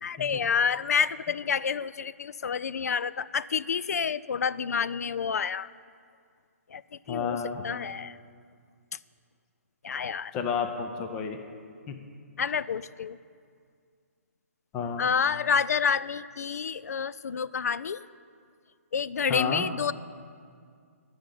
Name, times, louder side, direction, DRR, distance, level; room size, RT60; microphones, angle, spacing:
voice 1, 0.0-5.7 6.7-6.8 7.1-8.2 9.8-10.3 12.4-13.2 15.0-18.0 18.9-19.9, left 6 dB, 85° left, 18 dB, 0.3 m, -28 dB
voice 2, 7.1-7.6 10.3-11.4 11.9-12.0 14.7-15.1 19.3-19.6, left 6 dB, 10° left, 6 dB, 0.3 m, -31 dB
11.5 x 6.4 x 8.4 m, 2.2 s
hypercardioid pair, 175°, 8 cm